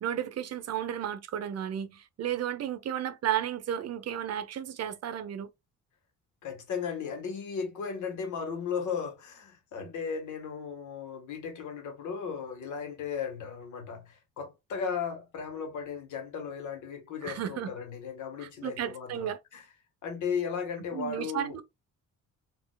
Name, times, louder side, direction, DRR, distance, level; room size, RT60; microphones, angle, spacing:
voice 1, 0.0-5.5 17.2-17.7 18.4-19.4 20.9-21.6, right 10 dB, 55° right, 0.7 m, -33 dB
voice 2, 6.4-19.6 20.0-21.6, left 6 dB, 80° left, 1.4 m, -36 dB
4.2 x 2.8 x 2.2 m
cardioid pair, 90°, 30 cm